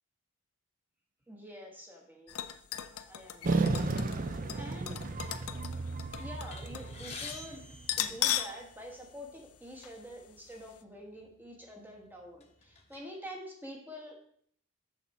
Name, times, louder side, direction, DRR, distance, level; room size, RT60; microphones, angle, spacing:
voice 1, 1.3-2.4 3.1-3.9 4.5-5.3 6.2-7.6 8.0-14.2, equal, 10° right, -1 dB, 1.4 m, -47 dB
sound 1, 2.3-6.9 7.2-7.3 7.8-8.6 9.0-9.1 9.8-10.0 10.4-10.5, left 11 dB, 80° left, 0.5 m, -37 dB
sound 2, 3.4-8.0, right 3 dB, 40° right, 0.5 m, -34 dB
sound 3, 6.5-8.8 9.7-9.8 10.1-10.3 11.2-11.3 11.8-13.0, left 4 dB, 30° left, 1.0 m, -47 dB
6.7 x 6.5 x 4.3 m, 0.63 s
head